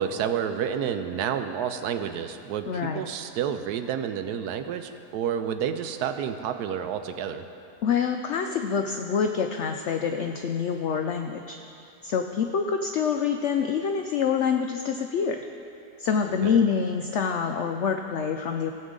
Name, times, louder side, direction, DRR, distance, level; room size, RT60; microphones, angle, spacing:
voice 1, 0.0-2.7 2.9-7.4 16.4-16.6, right 8 dB, 75° right, 8 dB, 1.1 m, -29 dB
voice 2, 2.7-3.0 7.8-11.6 12.0-15.4 16.0-18.7, left 6 dB, 80° left, 5 dB, 0.6 m, -26 dB
16.5 x 7.9 x 3.7 m, 2.6 s
omnidirectional pair, 1.7 m